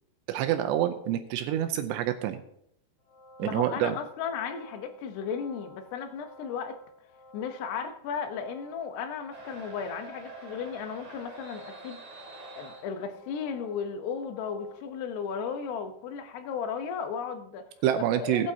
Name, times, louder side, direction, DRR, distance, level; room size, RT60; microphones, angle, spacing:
voice 1, 0.3-2.4 3.4-4.0 17.8-18.5, right 11 dB, 80° right, 7 dB, 2.6 m, -27 dB
sound 1, 3.0-14.8, equal, 45° left, 2.2 m, -52 dB
voice 2, 3.4-6.8 7.3-12.0 12.6-17.7 18.2-18.5, left 6 dB, 75° left, 7 dB, 2.7 m, -35 dB
sound 2, 9.3-13.0, right 3 dB, 40° right, 2.4 m, -46 dB
19.0 x 8.8 x 2.8 m, 0.74 s
omnidirectional pair, 5.5 m